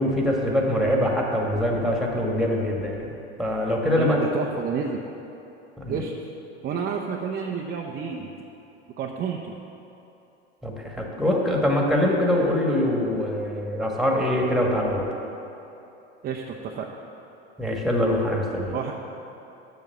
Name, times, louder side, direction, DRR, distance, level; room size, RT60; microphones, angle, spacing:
voice 1, 0.0-3.1 3.4-4.2 5.8-6.0 10.6-15.1 17.6-18.8, left 1 dB, ahead, -1 dB, 1.6 m, -23 dB
voice 2, 4.0-5.0 5.9-6.1 6.6-8.3 9.0-9.5 16.2-16.9 18.7-18.9, right 6 dB, 25° right, -1 dB, 0.7 m, -30 dB
7.5 x 7.2 x 6.7 m, 2.9 s
hypercardioid pair, 90°, 34 cm